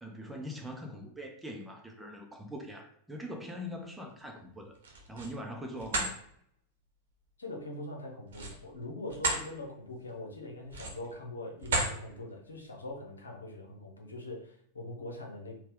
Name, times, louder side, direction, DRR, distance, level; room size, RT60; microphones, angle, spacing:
voice 1, 0.0-4.8 5.1-6.2, equal, 5° right, 1 dB, 0.8 m, -42 dB
sound 1, 4.7-5.4 5.8-6.1 8.3-9.5 9.9-10.1 10.7-11.1 11.6-12.0, right 3 dB, 60° right, 1.0 m, -32 dB
voice 2, 7.4-15.6, left 2 dB, 75° left, 0 dB, 0.9 m, -42 dB
4.3 x 2.4 x 3.6 m, 0.68 s
figure-of-eight pair, 90°, 0 cm